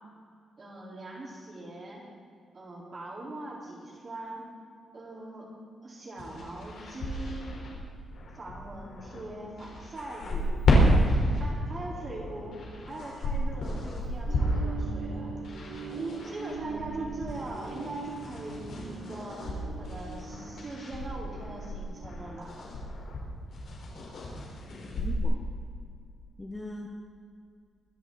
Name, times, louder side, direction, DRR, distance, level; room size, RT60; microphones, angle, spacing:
voice 1, 0.6-2.0 2.5-4.4 4.9-5.5 5.8-7.6 8.3-10.5 11.4-12.6 12.9-15.3 15.9-19.5 19.8-22.5, right 2 dB, 30° right, -5 dB, 4.1 m, -41 dB
sound 1, 6.2-25.2, equal, 60° left, 4.2 m, -31 dB
sound 2, 14.3-22.5, right 5 dB, 80° right, 2.0 m, -42 dB
voice 2, 25.0-25.5 26.4-26.9, left 2 dB, 10° left, 1 dB, 0.9 m, -40 dB
23.5 x 11.0 x 4.1 m, 2.3 s
wide cardioid pair, 160°, 0 cm